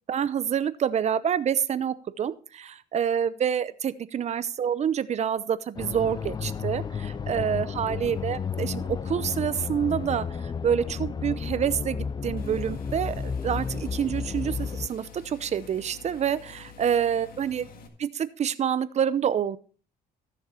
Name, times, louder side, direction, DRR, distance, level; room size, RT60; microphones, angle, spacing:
voice 1, 0.1-17.7 18.0-19.6, right 8 dB, 40° right, 15 dB, 0.7 m, -27 dB
sound 1, 5.8-14.9, left 6 dB, 25° left, 0.4 m, -32 dB
sound 2, 12.4-17.9, left 5 dB, 60° left, 1.9 m, -48 dB
14.0 x 6.5 x 4.4 m, 0.41 s
cardioid pair, 110°, 17 cm